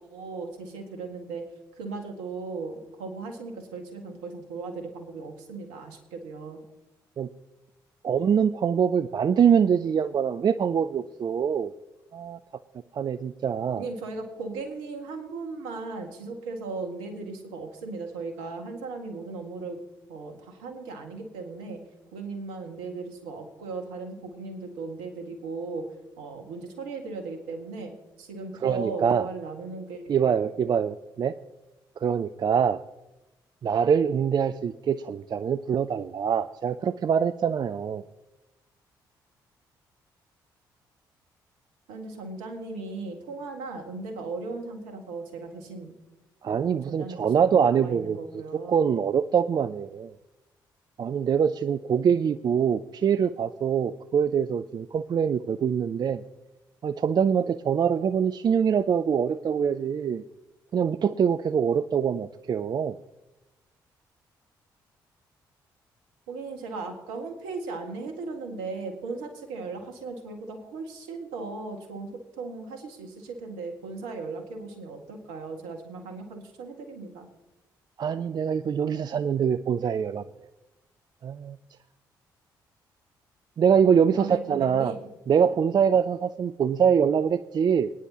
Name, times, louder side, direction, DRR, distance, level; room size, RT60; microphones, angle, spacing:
voice 1, 0.0-1.5 1.8-6.6 13.8-19.8 20.1-21.8 22.1-25.9 26.2-30.3 41.9-45.9 46.5-48.9 66.3-77.3 84.2-85.0, right 3 dB, 70° right, 5 dB, 1.8 m, -37 dB
voice 2, 8.0-11.7 12.1-12.4 12.9-13.8 28.6-29.3 30.1-31.3 32.0-32.8 33.6-38.0 46.4-48.2 48.7-50.2 51.0-56.2 56.8-60.2 60.7-62.9 78.0-80.2 81.2-81.6 83.6-84.9 85.3-87.9, right 7 dB, 40° right, 13 dB, 0.4 m, -24 dB
22.0 x 9.9 x 2.9 m, 1.0 s
figure-of-eight pair, 40°, 11 cm